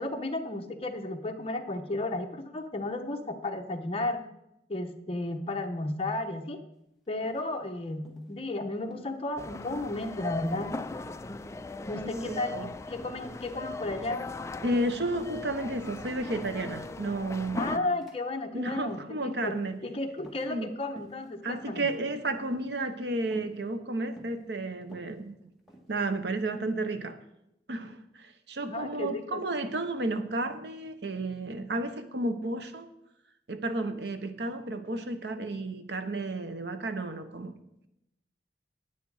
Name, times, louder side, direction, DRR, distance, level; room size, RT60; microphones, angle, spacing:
voice 1, 0.0-4.2 4.7-6.6 7.1-10.7 11.9-14.3 17.6-19.5 19.8-21.9 28.7-29.4, left 2 dB, 35° left, 5 dB, 0.9 m, -33 dB
sound 1, 7.2-7.7 8.1-8.3 8.8-9.1 9.7-10.2 10.5-10.7 11.3-11.7 12.0-12.4 13.0-13.3 13.9-14.3 14.7-15.0 15.4-16.7 17.1-17.4 17.9-18.2 18.5-18.9 19.5-19.8 20.2-20.7 21.0-21.3 21.6-22.0 22.5-22.8 23.3-23.6 24.2-24.4 24.8-25.9, right 1 dB, ahead, 1.5 m, -51 dB
sound 2, 9.4-17.8, left 2 dB, 15° left, 0.3 m, -39 dB
voice 2, 12.1-12.7 14.6-17.8 18.5-19.8 20.5-20.7 21.4-25.3 25.9-27.2 27.7-32.9 33.5-37.5, right 2 dB, 70° right, 9 dB, 0.9 m, -32 dB
9.4 x 9.1 x 4.8 m, 0.83 s
head